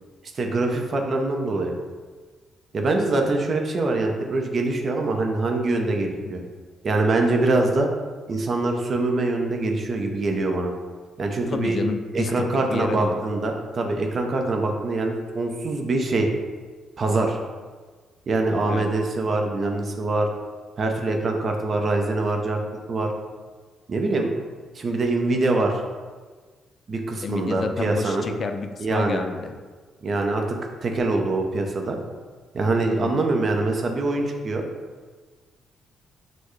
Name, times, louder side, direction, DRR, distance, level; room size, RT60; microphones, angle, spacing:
voice 1, 0.4-1.7 2.7-6.4 6.8-7.9 8.3-10.7 11.2-11.8 12.1-16.3 17.0-17.4 18.3-20.3 20.8-22.6 22.9-23.1 23.9-24.3 24.7-25.8 26.9-28.3 28.8-29.2 30.0-30.6 30.8-32.0 32.5-34.6, right 2 dB, 45° right, 3 dB, 0.6 m, -24 dB
voice 2, 11.5-13.2 18.7-18.9 27.2-29.5 32.9-33.1, left 4 dB, 45° left, 7 dB, 0.3 m, -30 dB
6.4 x 2.2 x 3.1 m, 1.4 s
cardioid pair, 90°, 0 cm